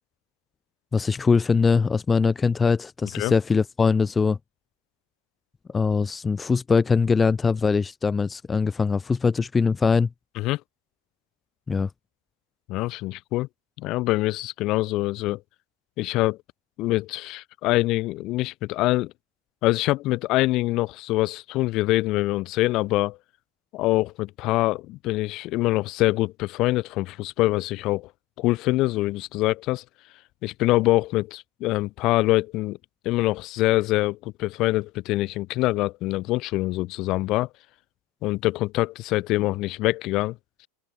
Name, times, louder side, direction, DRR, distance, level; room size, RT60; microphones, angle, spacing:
voice 1, 0.9-4.4 5.7-10.1 11.7-11.9, left 5 dB, 15° left, 1.1 m, -22 dB
voice 2, 12.7-13.5 13.8-15.4 16.0-16.4 16.8-19.1 19.6-23.2 23.7-28.1 28.4-29.8 30.4-32.8 33.0-37.5 38.2-40.4, left 19 dB, 40° left, 1.3 m, -24 dB
open air
figure-of-eight pair, 90°, 0 cm